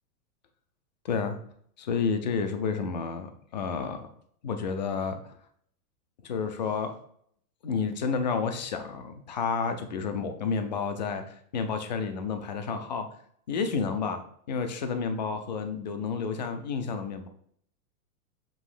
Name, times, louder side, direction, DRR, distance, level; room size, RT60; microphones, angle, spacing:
voice 1, 1.0-1.4 1.8-4.1 4.4-5.2 6.2-6.9 7.6-13.1 13.5-14.2 14.5-17.3, left 5 dB, 30° left, 7 dB, 0.4 m, -30 dB
7.6 x 3.0 x 4.8 m, 0.64 s
supercardioid pair, 170°, 47 cm